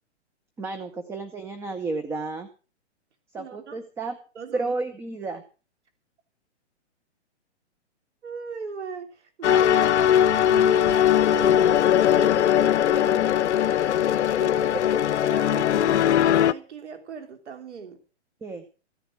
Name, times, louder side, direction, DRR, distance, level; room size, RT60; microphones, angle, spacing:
voice 1, 0.6-2.5 3.3-4.2 4.5-5.4 14.4-14.8 15.8-15.9 18.4-18.6, right 3 dB, 5° right, 7 dB, 0.7 m, -32 dB
voice 2, 3.3-3.8 4.3-4.7 8.2-11.7 12.1-13.3 13.7-14.0 15.2-18.0, right 5 dB, 75° right, 7 dB, 3.1 m, -38 dB
sound 1, 9.4-16.5, left 10 dB, 70° left, 0.7 m, -20 dB
15.5 x 10.5 x 6.1 m, 0.36 s
hypercardioid pair, 150°, 35 cm